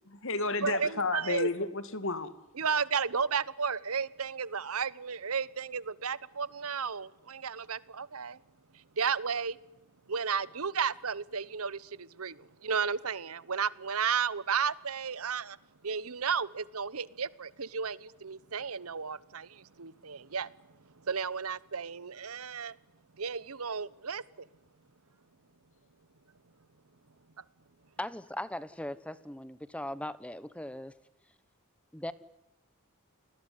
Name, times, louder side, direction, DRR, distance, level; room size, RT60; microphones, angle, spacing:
voice 1, 0.1-2.3, left 3 dB, 60° left, 13 dB, 2.4 m, -32 dB
voice 2, 0.6-1.5 2.6-8.4 8.7-9.6 10.1-15.6 15.8-20.5 21.0-22.8 23.2-24.2, right 6 dB, 75° right, 20 dB, 1.0 m, -33 dB
voice 3, 28.0-30.9 31.9-32.1, left 1 dB, 5° left, 17 dB, 1.1 m, -39 dB
29.5 x 20.5 x 9.7 m, 0.91 s
head